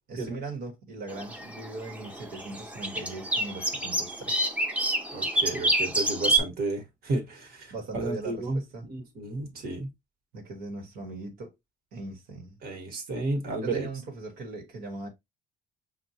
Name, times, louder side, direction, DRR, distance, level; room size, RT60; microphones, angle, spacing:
voice 1, 0.1-4.6 7.7-8.9 10.3-11.5 11.9-12.6 13.6-15.1, right 3 dB, 85° right, 1.2 m, -39 dB
sound 1, 1.1-6.4, right 1 dB, 10° right, 0.6 m, -28 dB
voice 2, 5.1-8.6 8.9-9.9 12.6-13.9, right 2 dB, 65° right, 1.4 m, -32 dB
5.9 x 2.3 x 2.7 m
cardioid pair, 110°, 17 cm